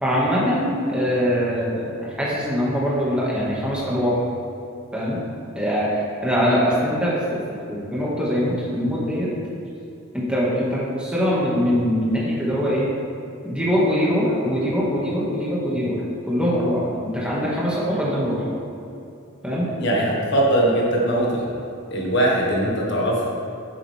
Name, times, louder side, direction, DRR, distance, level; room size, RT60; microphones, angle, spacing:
voice 1, 0.0-4.2 4.9-5.2 5.6-7.4 7.7-9.3 10.1-12.9 13.4-18.4 19.4-19.7, equal, 5° right, -7 dB, 1.9 m, -22 dB
voice 2, 19.8-21.6 21.9-23.3, right 1 dB, 55° left, -3 dB, 1.7 m, -21 dB
11.0 x 7.7 x 3.5 m, 2.8 s
head